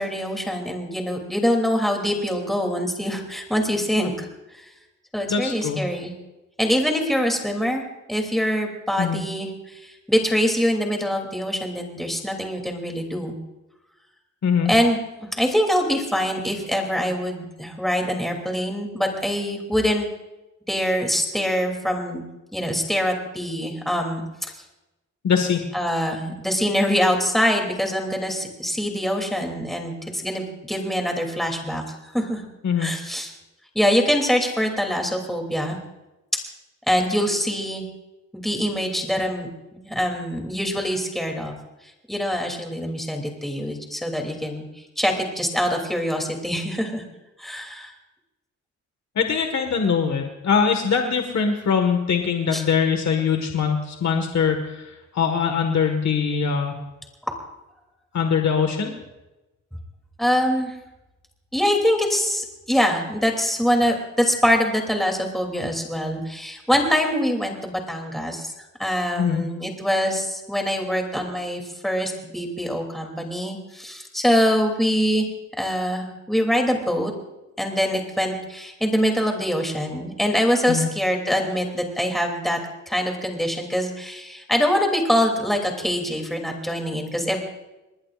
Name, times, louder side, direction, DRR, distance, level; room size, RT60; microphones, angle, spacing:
voice 1, 0.0-4.6 5.1-6.1 6.6-7.8 8.1-13.3 14.7-15.0 15.4-20.1 20.7-22.2 22.5-24.2 25.7-32.4 32.8-33.3 33.7-35.8 36.9-37.8 38.3-39.5 39.8-41.5 42.1-44.6 45.0-47.0 47.4-47.9 52.5-52.6 57.3-57.4 60.2-60.8 61.5-68.5 68.8-75.3 75.6-77.1 77.6-82.6 82.9-87.4, equal, ahead, 2 dB, 2.9 m, -24 dB
voice 2, 5.3-5.8 9.0-9.2 14.4-14.7 25.2-25.6 32.6-32.9 49.1-56.7 58.1-58.9 69.2-69.4 80.7-80.9, left 6 dB, 65° left, 4 dB, 1.7 m, -22 dB
26.0 x 20.0 x 2.5 m, 1.0 s
cardioid pair, 100°, 29 cm